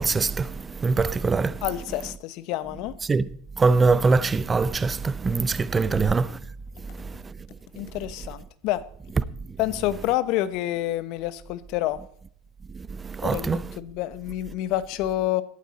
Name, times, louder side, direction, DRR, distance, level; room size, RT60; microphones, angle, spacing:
voice 1, 0.0-1.6 3.0-3.3 3.6-6.4 6.9-7.3 12.7-13.6, right 4 dB, 20° right, 0.7 m, -23 dB
voice 2, 1.6-2.9 5.8-6.2 7.8-8.8 9.6-12.0 13.2-15.4, left 14 dB, 60° left, 1.0 m, -28 dB
17.5 x 12.0 x 4.3 m
supercardioid pair, 105°, 0 cm